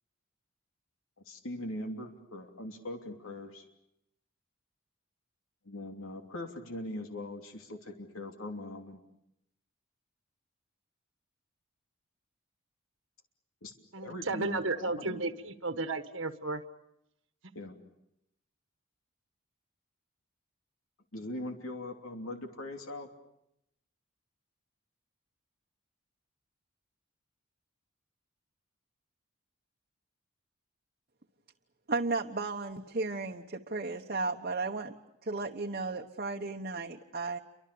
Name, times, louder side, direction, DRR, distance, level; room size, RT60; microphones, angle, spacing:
voice 1, 1.2-3.6 5.6-9.0 13.6-13.7 14.0-15.2 17.5-17.8 21.1-23.1, left 1 dB, 85° left, 4 dB, 3.0 m, -41 dB
voice 2, 13.9-16.6, right 3 dB, 65° right, 8 dB, 1.5 m, -33 dB
voice 3, 31.9-35.0 35.2-37.4, right 3 dB, 45° right, 1 dB, 1.1 m, -34 dB
29.5 x 24.5 x 6.9 m, 0.80 s
head